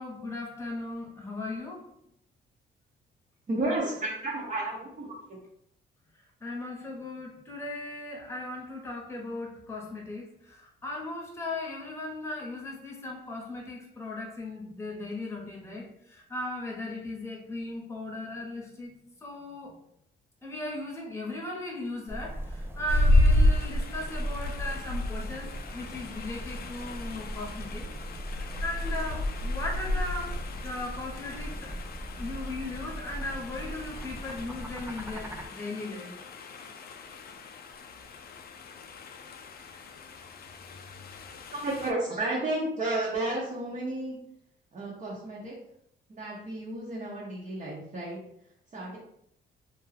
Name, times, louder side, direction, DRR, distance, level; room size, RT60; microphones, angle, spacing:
voice 1, 0.0-1.8 6.4-18.9 19.2-19.8 20.4-27.9 28.3-31.7 32.2-36.1, left 2 dB, 15° left, -2 dB, 0.9 m, -37 dB
voice 2, 3.5-5.4 41.5-44.2 44.7-45.6 46.1-48.2 48.7-49.0, right 2 dB, 40° right, -5 dB, 0.8 m, -32 dB
sound 1, 22.1-35.5, right 1 dB, 10° right, 0.4 m, -40 dB
sound 2, 22.9-41.9, left 1 dB, 50° left, 0.4 m, -31 dB
2.3 x 2.2 x 3.2 m, 0.73 s
cardioid pair, 90°, 20 cm